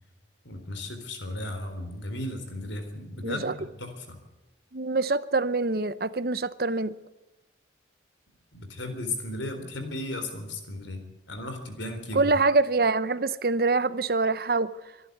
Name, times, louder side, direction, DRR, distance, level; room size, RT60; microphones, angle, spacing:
voice 1, 0.4-4.2 8.5-12.4, left 2 dB, 85° left, 4.0 m, -35 dB
voice 2, 3.2-3.5 4.7-6.9 12.1-14.7, right 3 dB, 50° right, 0.8 m, -25 dB
25.0 x 11.0 x 9.5 m
head